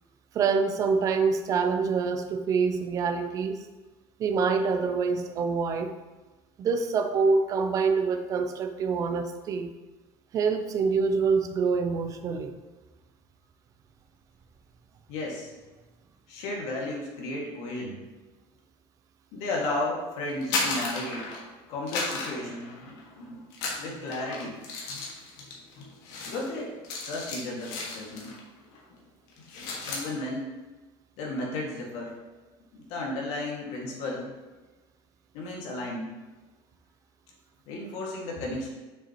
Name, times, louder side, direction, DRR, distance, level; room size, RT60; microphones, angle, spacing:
voice 1, 0.3-3.6 4.2-5.9 6.6-9.7 10.3-12.5, right 5 dB, 30° right, 7 dB, 0.4 m, -26 dB
voice 2, 15.1-15.5 16.3-18.0 19.3-21.3 21.7-23.4 23.8-25.0 25.4-25.5 25.8-25.9 26.2-26.7 27.0-28.3 29.5-30.5 31.2-32.1 32.7-34.3 35.3-36.1 37.7-38.7, left 2 dB, 60° left, -2 dB, 1.8 m, -34 dB
sound 1, 20.3-21.5 21.9-23.1 23.5-28.4 28.7-29.0 29.3-30.1, left 3 dB, 80° left, 1.6 m, -34 dB
6.7 x 5.7 x 2.9 m, 1.2 s
cardioid pair, 175°, 12 cm